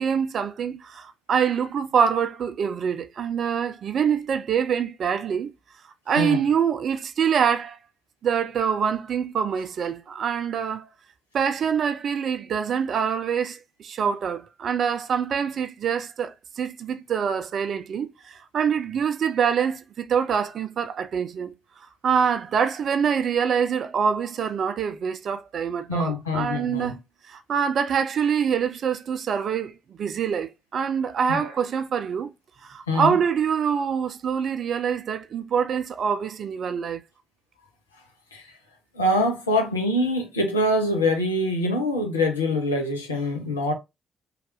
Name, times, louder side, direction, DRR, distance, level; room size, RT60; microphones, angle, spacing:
voice 1, 0.0-5.5 6.1-7.8 8.2-10.9 11.3-21.5 22.0-27.0 27.3-32.3 32.6-37.0, right 7 dB, 55° right, 0.4 m, -25 dB
voice 2, 25.9-26.9 31.3-31.5 32.9-33.2 38.3-38.5 38.9-43.7, left 1 dB, 85° left, 0.5 m, -24 dB
3.2 x 2.4 x 2.8 m
figure-of-eight pair, 40°, 0 cm